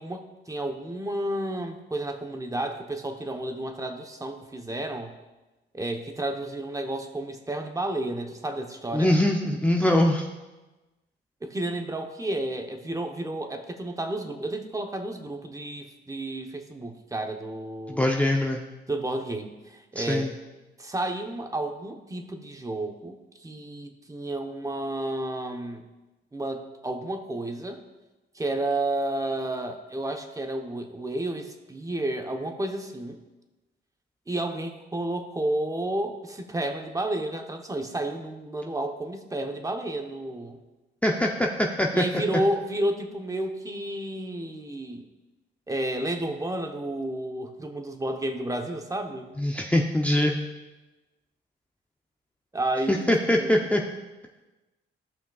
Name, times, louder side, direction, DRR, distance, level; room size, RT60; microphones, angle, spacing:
voice 1, 0.0-5.1 5.7-9.1 11.4-18.1 18.9-20.4 20.8-25.8 26.3-27.8 28.3-33.2 34.3-40.6 41.9-45.0 45.7-49.3 52.5-53.6, right 1 dB, 15° right, 4 dB, 0.9 m, -31 dB
voice 2, 8.9-10.3 17.9-18.6 20.0-20.3 41.0-42.0 49.4-50.4 52.9-53.8, left 1 dB, 5° left, 0 dB, 0.6 m, -23 dB
15.0 x 5.7 x 2.4 m, 1.1 s
cardioid pair, 90°, 20 cm